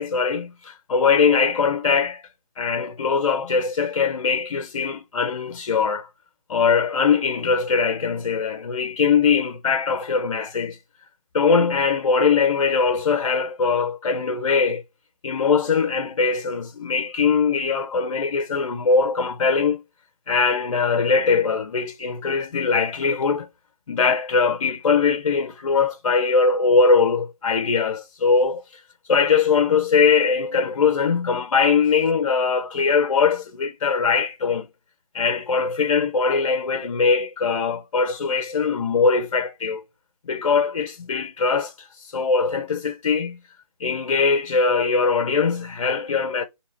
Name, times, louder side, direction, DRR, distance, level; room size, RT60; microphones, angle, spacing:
voice 1, 0.0-2.2 2.6-6.1 6.5-10.8 11.3-14.8 15.2-19.8 20.3-23.5 23.9-28.6 29.1-34.7 35.1-39.8 40.3-41.9 42.1-43.4 43.8-46.4, left 5 dB, 60° left, 0.6 m, -21 dB
3.0 x 2.9 x 4.1 m
figure-of-eight pair, 155°, 19 cm